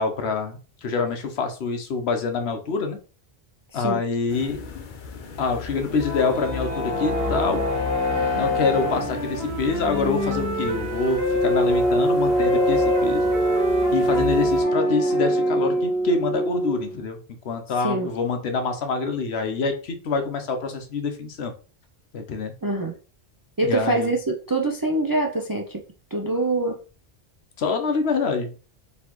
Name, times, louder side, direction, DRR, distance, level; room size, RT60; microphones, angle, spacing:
voice 1, 0.0-3.0 3.7-4.6 5.4-7.6 8.3-13.3 13.9-17.2 17.4-21.5 22.1-22.5 23.6-24.1 27.6-28.5, left 4 dB, 80° left, 6 dB, 1.0 m, -26 dB
voice 2, 3.7-4.0 17.8-18.1 22.6-23.0 23.6-25.8 26.1-26.8, right 2 dB, 35° right, 2 dB, 0.3 m, -24 dB
sound 1, 4.3-14.6, left 4 dB, 55° left, 0.7 m, -36 dB
sound 2, 5.8-17.0, equal, 15° left, 1.3 m, -24 dB
Wind instrument woodwind instrument, 7.7-11.7 12.3-15.9, left 1 dB, 80° right, 1.6 m, -30 dB
4.1 x 3.2 x 3.0 m, 0.36 s
omnidirectional pair, 1.1 m